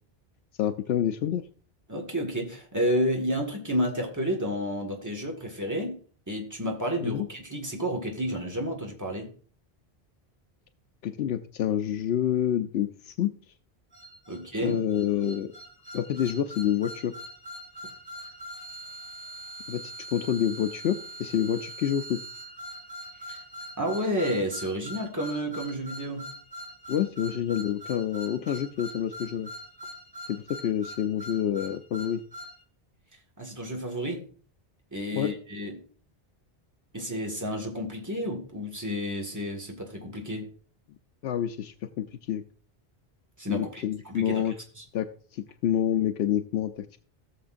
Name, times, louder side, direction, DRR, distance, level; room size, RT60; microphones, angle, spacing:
voice 1, 0.6-1.4 7.0-7.3 11.0-13.3 14.6-15.5 15.9-17.1 19.7-22.2 26.9-29.5 30.3-32.2 35.1-35.3 41.2-42.4 43.5-44.5 44.9-45.1 45.3-46.9, left 10 dB, 80° left, 0.8 m, -28 dB
voice 2, 1.9-6.0 6.3-9.3 14.3-14.8 23.3-23.4 23.8-26.3 33.4-34.2 34.9-35.8 36.9-40.5 43.4-44.4 44.8-44.9, equal, 15° right, 1.7 m, -31 dB
sound 1, 13.9-32.6, right 1 dB, 5° left, 2.2 m, -43 dB
17.0 x 6.7 x 2.5 m
omnidirectional pair, 1.1 m